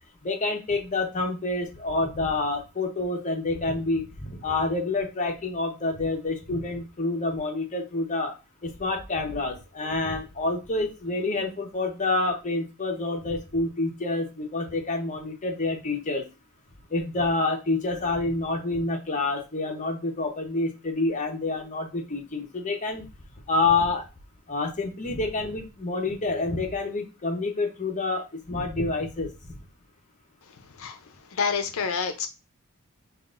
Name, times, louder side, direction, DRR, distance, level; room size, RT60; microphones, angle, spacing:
voice 1, 0.2-8.3 8.6-16.2 16.9-23.1 23.5-24.1 24.5-29.3, left 3 dB, 35° left, 2 dB, 0.9 m, -28 dB
voice 2, 31.3-32.3, left 5 dB, 65° left, 7 dB, 0.6 m, -27 dB
5.7 x 2.5 x 2.5 m, 0.28 s
head